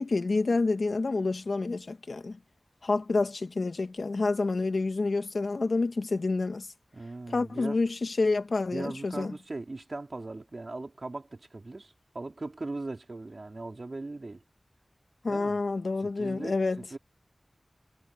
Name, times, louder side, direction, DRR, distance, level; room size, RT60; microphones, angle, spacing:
voice 1, 0.0-2.4 2.8-6.7 7.3-9.3 15.2-16.8, left 3 dB, 70° left, 1.8 m, -28 dB
voice 2, 6.9-7.8 8.7-14.4 15.3-15.6 16.0-17.0, right 2 dB, 50° right, 3.6 m, -39 dB
wide cardioid pair, 85°, 0 cm